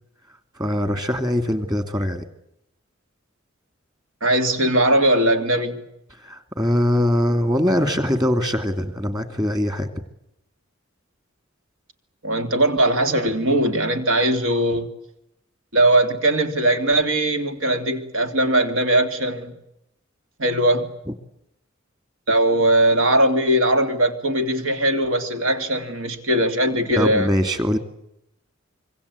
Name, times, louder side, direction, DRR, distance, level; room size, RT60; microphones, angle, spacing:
voice 1, 0.6-2.3 6.2-9.9 27.0-27.8, left 1 dB, 20° right, 9 dB, 2.5 m, -22 dB
voice 2, 4.2-5.8 12.2-14.9 15.7-19.6 20.4-20.9 22.3-27.3, right 1 dB, 80° right, 7 dB, 2.8 m, -20 dB
25.5 x 24.0 x 8.4 m, 0.82 s
head